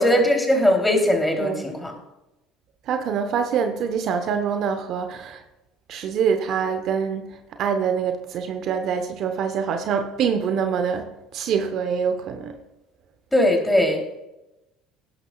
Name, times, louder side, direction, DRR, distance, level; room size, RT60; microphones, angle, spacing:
voice 1, 0.0-1.9 13.3-14.0, left 1 dB, 10° left, 3.1 m, -19 dB
voice 2, 2.9-5.4 5.9-12.6, right 7 dB, 55° right, 1.0 m, -25 dB
18.0 x 11.5 x 2.4 m
hypercardioid pair, 75°, 0 cm